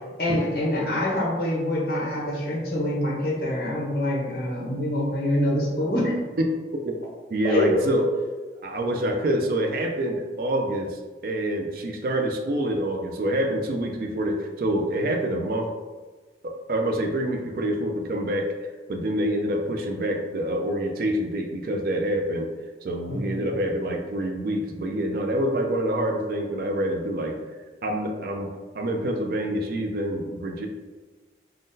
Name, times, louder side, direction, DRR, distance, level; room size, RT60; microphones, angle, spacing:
voice 1, 0.2-6.1 7.4-7.7 23.1-23.4, left 1 dB, 55° left, -4 dB, 0.8 m, -25 dB
voice 2, 7.3-8.1 8.6-15.7 16.4-22.5 22.8-27.4 27.8-30.7, right 1 dB, 55° right, 3 dB, 0.3 m, -26 dB
3.6 x 2.2 x 2.6 m, 1.3 s
head